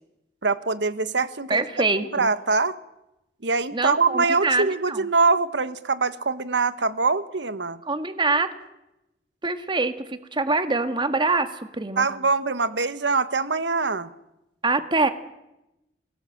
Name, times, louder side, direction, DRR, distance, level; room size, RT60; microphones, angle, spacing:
voice 1, 0.4-1.6 2.1-2.8 3.4-7.8 12.0-14.1, right 4 dB, 85° right, 13 dB, 1.3 m, -23 dB
voice 2, 1.5-2.3 3.7-5.0 7.8-8.5 9.4-12.1 14.6-15.1, right 3 dB, 30° right, 9 dB, 1.8 m, -24 dB
29.0 x 18.0 x 7.9 m, 0.90 s
head